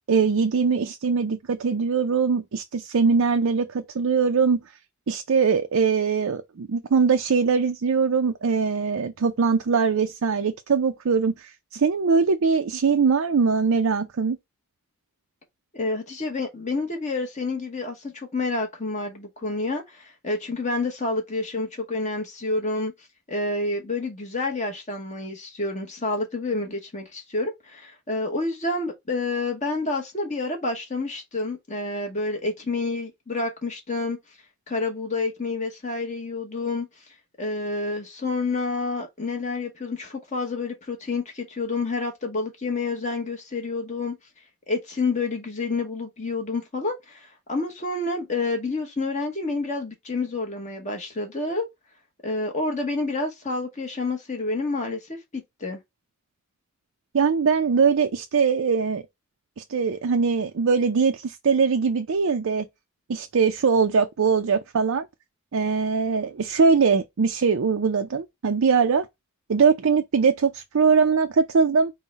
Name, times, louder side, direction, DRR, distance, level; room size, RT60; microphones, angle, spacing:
voice 1, 0.1-4.6 5.1-14.4 57.1-59.0 59.6-62.7 63.1-65.1 65.5-69.1 69.5-71.9, right 5 dB, 70° right, 0.5 m, -22 dB
voice 2, 15.7-22.9 23.3-34.2 34.7-36.9 37.4-44.1 44.7-51.7 52.2-55.8, left 3 dB, 30° left, 1.0 m, -29 dB
5.4 x 2.2 x 4.1 m
head